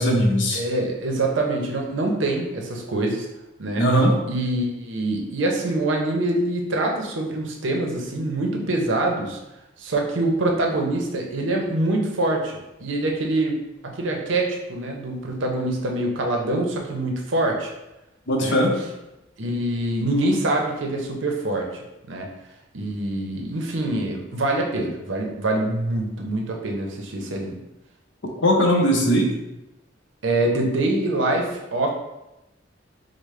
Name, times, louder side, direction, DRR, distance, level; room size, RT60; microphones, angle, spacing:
voice 1, 0.0-0.6 3.8-4.2 18.3-18.7 28.4-29.3, equal, 70° left, 1 dB, 0.8 m, -19 dB
voice 2, 0.5-3.3 3.6-3.8 4.3-9.4 9.8-17.7 18.4-18.6 19.4-21.7 22.1-22.3 22.7-27.6 30.2-31.9, right 2 dB, 70° right, 1 dB, 0.7 m, -25 dB
4.9 x 2.1 x 3.1 m, 0.95 s
head